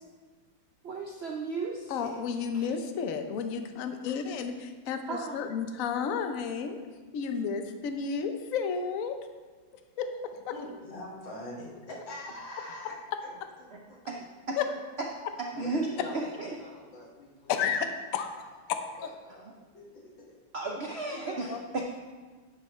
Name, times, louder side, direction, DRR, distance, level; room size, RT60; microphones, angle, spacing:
voice 1, 0.8-2.1 2.5-2.7 5.1-5.4 13.7-13.8 14.1-14.6 15.0-15.1 15.6-16.5 20.5-21.8, right 3 dB, 65° right, 1 dB, 0.6 m, -34 dB
voice 2, 1.9-6.8 7.1-9.2 10.0-10.3 14.6-14.7 16.0-16.1 17.5-18.3 18.7-19.1 21.2-21.6, left 6 dB, 60° left, 7 dB, 0.9 m, -32 dB
voice 3, 10.5-12.9 13.2-13.3 13.6-13.7 15.5-17.9 18.4-18.6 19.0-20.1 21.0-21.6, left 1 dB, 85° left, -3 dB, 2.6 m, -44 dB
10.0 x 8.6 x 3.1 m, 1.4 s
omnidirectional pair, 2.0 m